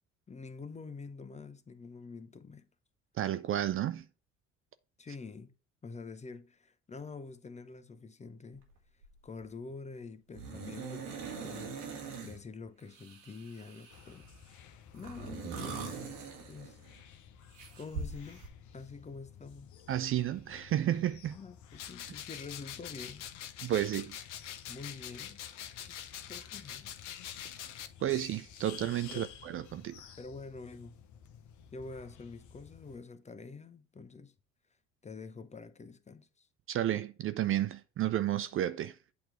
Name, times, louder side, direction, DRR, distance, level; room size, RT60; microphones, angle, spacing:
voice 1, 0.3-2.7 5.0-5.5 5.8-8.6 9.2-11.7 12.2-14.3 14.6-15.9 16.4-16.8 17.8-18.4 18.7-19.7 21.3-23.3 24.7-25.4 25.8-26.0 26.3-26.9 29.1-29.3 30.2-31.0 31.7-34.3 35.0-36.5, left 4 dB, 20° left, 0.7 m, -46 dB
voice 2, 3.2-4.1 19.9-21.4 23.6-24.2 28.0-30.1 36.7-39.0, right 12 dB, 40° right, 0.4 m, -32 dB
sound 1, 8.5-8.7 9.0-9.5 10.3-12.4 12.9-14.3 14.9-17.0 17.5-18.5, right 5 dB, 80° right, 1.6 m, -42 dB
sound 2, 13.9-33.0, left 8 dB, 60° left, 0.9 m, -54 dB
sound 3, 21.8-27.9, left 10 dB, 90° left, 0.6 m, -44 dB
8.5 x 3.0 x 4.6 m
hypercardioid pair, 65°, 35 cm